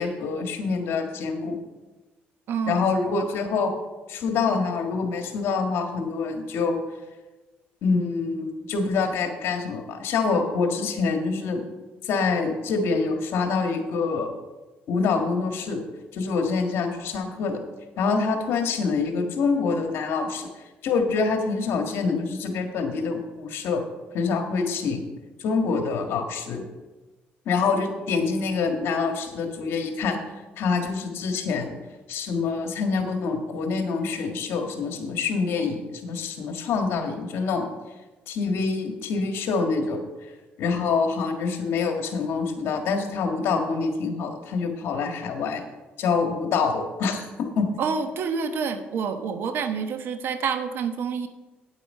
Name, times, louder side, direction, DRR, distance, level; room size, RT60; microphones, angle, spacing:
voice 1, 0.0-1.6 2.7-3.7 4.1-6.8 7.8-11.6 12.0-14.3 14.9-15.8 16.1-17.6 18.0-20.5 20.8-23.8 24.1-25.1 25.4-26.6 27.4-30.2 30.6-31.7 32.1-37.7 38.3-40.0 40.6-45.6 46.0-47.7, left 4 dB, 75° left, 5 dB, 1.7 m, -26 dB
voice 2, 2.5-3.0 47.8-51.3, right 6 dB, 65° right, 9 dB, 1.0 m, -28 dB
9.2 x 8.3 x 5.5 m, 1.2 s
cardioid pair, 105°, 4 cm